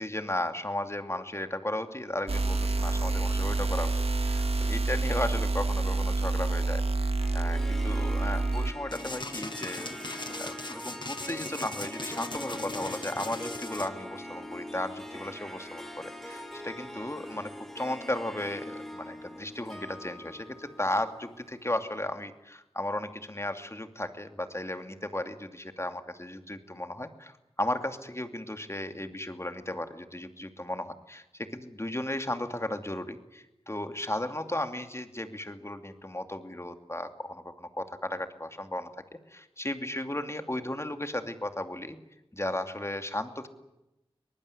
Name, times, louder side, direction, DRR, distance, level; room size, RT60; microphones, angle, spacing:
voice 1, 0.0-3.9 4.2-38.9 39.3-42.0 42.3-43.5, left 1 dB, 25° left, 7 dB, 2.6 m, -35 dB
sound 1, 2.3-8.7, right 2 dB, 80° right, 1.6 m, -28 dB
Harp, 7.2-21.7, left 1 dB, 5° left, 4.9 m, -42 dB
sound 2, 8.9-13.9, left 2 dB, 50° left, 2.0 m, -39 dB
23.5 x 20.0 x 9.8 m, 0.91 s
wide cardioid pair, 45°, 10 cm